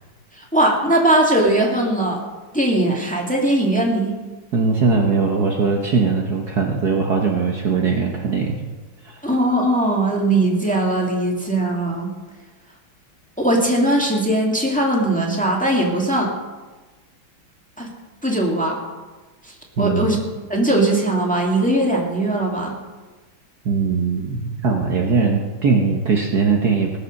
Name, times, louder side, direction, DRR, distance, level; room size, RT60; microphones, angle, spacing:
voice 1, 0.3-2.2 2.5-4.2 9.2-12.1 13.4-16.3 17.8-17.9 18.2-18.8 19.4-20.2 20.5-22.8, right 1 dB, 5° left, -1 dB, 2.0 m, -19 dB
voice 2, 4.5-8.6 9.0-9.2 19.8-20.1 23.6-27.0, right 5 dB, 55° right, 1 dB, 1.5 m, -20 dB
19.0 x 6.9 x 6.5 m, 1.3 s
omnidirectional pair, 2.3 m